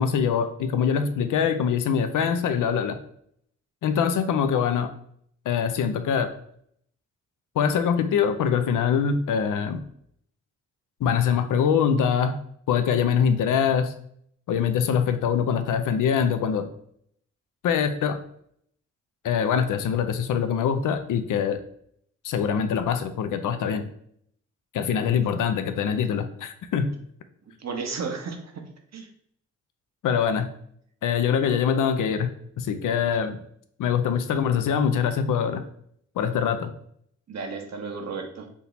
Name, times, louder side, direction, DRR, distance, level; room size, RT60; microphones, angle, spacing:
voice 1, 0.0-3.0 3.8-4.9 5.5-6.3 7.6-9.8 11.0-12.4 12.7-13.9 14.5-16.7 17.6-18.2 19.2-21.6 22.2-23.8 24.7-26.9 30.0-30.5 31.0-32.3 32.6-33.4 33.8-35.6 36.2-36.7, left 7 dB, 80° left, 9 dB, 0.6 m, -23 dB
voice 2, 27.6-28.4 28.9-29.1 33.0-33.1 37.3-38.5, right 5 dB, 60° right, 3 dB, 1.0 m, -33 dB
3.6 x 2.9 x 4.0 m, 0.66 s
cardioid pair, 55°, 31 cm